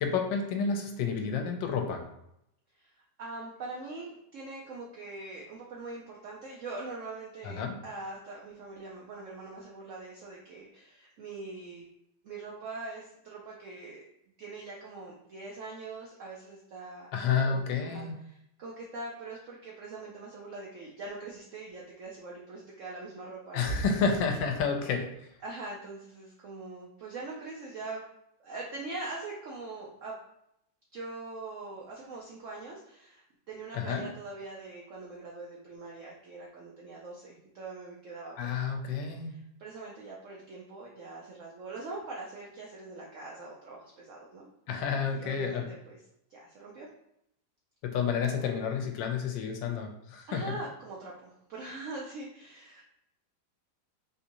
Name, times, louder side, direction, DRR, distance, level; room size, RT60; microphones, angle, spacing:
voice 1, 0.0-2.0 7.4-7.8 17.1-18.1 23.5-25.0 33.7-34.1 38.4-39.3 44.7-45.7 47.8-50.6, left 5 dB, 85° left, 4 dB, 1.3 m, -30 dB
voice 2, 2.8-11.9 12.2-14.0 14.4-23.8 25.4-28.0 28.4-30.1 30.9-38.5 39.2-44.5 45.0-46.0 46.3-46.9 48.1-48.4 50.3-52.8, right 3 dB, 80° right, -3 dB, 0.7 m, -43 dB
3.7 x 2.6 x 2.9 m, 0.79 s
omnidirectional pair, 1.9 m